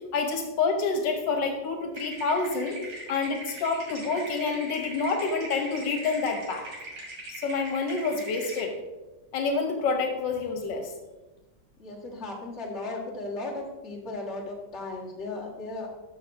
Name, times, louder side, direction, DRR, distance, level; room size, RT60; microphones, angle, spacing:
voice 1, 0.1-2.8 3.1-6.7 7.4-8.8 9.3-10.9, left 4 dB, 90° left, 4 dB, 1.6 m, -28 dB
sound 1, 2.0-8.6, right 1 dB, 75° right, 2.8 m, -41 dB
voice 2, 11.8-15.9, left 2 dB, 40° left, -4 dB, 1.9 m, -36 dB
12.5 x 5.8 x 2.6 m, 1.1 s
omnidirectional pair, 1.9 m